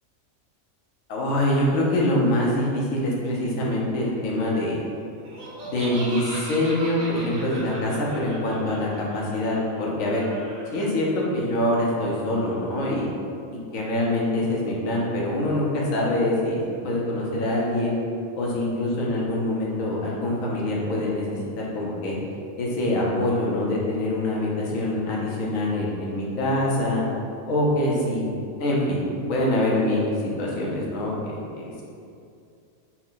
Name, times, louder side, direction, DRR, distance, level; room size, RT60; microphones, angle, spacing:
voice 1, 1.1-4.8 5.6-10.2 10.7-13.1 13.7-18.0 18.3-22.2 22.6-27.0 27.5-28.2 28.6-29.0 29.3-31.8, left 1 dB, 75° left, -3 dB, 1.2 m, -24 dB
Laughter, 5.2-10.8, right 1 dB, 75° right, 1.3 m, -39 dB
4.7 x 2.2 x 3.8 m, 2.5 s
omnidirectional pair, 1.4 m